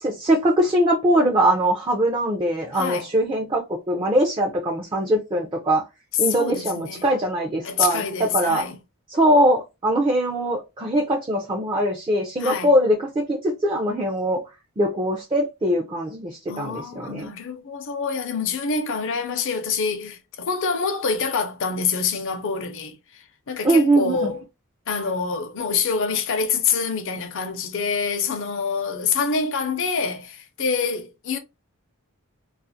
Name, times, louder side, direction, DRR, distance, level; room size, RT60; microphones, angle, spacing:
voice 1, 0.0-5.8 6.2-8.6 9.1-14.4 14.8-17.3 23.6-24.3, right 1 dB, 25° right, 0.4 m, -22 dB
voice 2, 2.7-3.1 6.1-7.1 7.6-8.8 12.4-12.7 16.5-24.4 24.9-31.4, left 5 dB, 60° left, 0.6 m, -26 dB
2.4 x 2.4 x 2.7 m
head